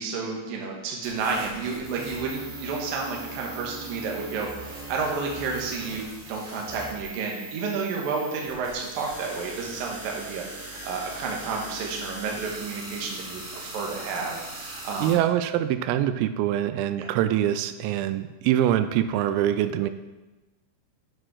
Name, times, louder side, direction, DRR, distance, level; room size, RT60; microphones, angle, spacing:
voice 1, 0.0-15.2 17.0-17.1, right 4 dB, 65° right, -1 dB, 2.4 m, -31 dB
sound 1, 1.0-15.1, right 2 dB, 50° right, 3.2 m, -40 dB
voice 2, 15.0-19.9, right 11 dB, 90° right, 11 dB, 3.3 m, -24 dB
8.9 x 6.1 x 4.8 m, 1.1 s
omnidirectional pair, 5.9 m